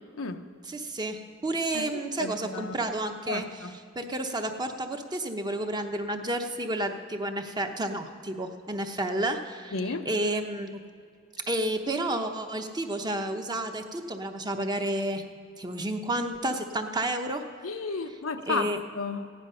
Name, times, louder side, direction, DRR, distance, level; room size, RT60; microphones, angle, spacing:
voice 1, 0.7-3.5 3.9-9.8 10.1-10.8 11.5-15.2 15.6-17.7 18.5-18.8, right 1 dB, 20° right, 5 dB, 0.8 m, -31 dB
voice 2, 1.7-2.8 3.3-3.7 9.7-10.1 17.6-19.3, left 3 dB, 85° left, 7 dB, 0.7 m, -33 dB
15.5 x 9.9 x 5.5 m, 2.3 s
head